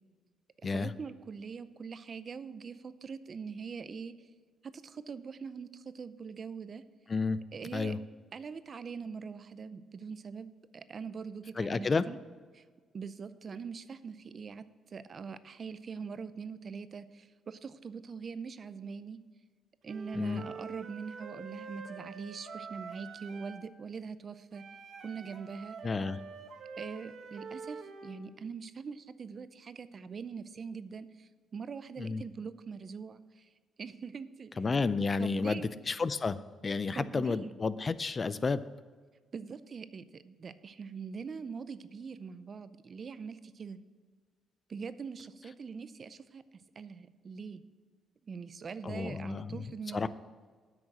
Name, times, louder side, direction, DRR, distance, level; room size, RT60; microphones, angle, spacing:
voice 1, 0.6-4.3 4.6-6.8 7.5-7.9 8.3-12.2 12.5-12.6 12.9-19.2 19.8-24.6 25.0-25.8 26.8-33.5 33.8-34.5 35.2-35.7 37.0-37.5 39.3-43.8 44.7-46.4 46.8-47.6 48.2-50.1, right 5 dB, 45° right, 14 dB, 0.6 m, -43 dB
voice 2, 11.6-12.0 20.1-20.4 25.8-26.2 32.0-32.2 34.6-36.4 36.6-38.6 48.8-49.6 49.9-50.1, left 4 dB, 35° left, 15 dB, 0.4 m, -31 dB
Wind instrument woodwind instrument, 19.9-23.7 24.5-28.2, right 5 dB, 65° right, 1.0 m, -46 dB
8.8 x 6.2 x 7.6 m, 1.5 s
cardioid pair, 90°, 0 cm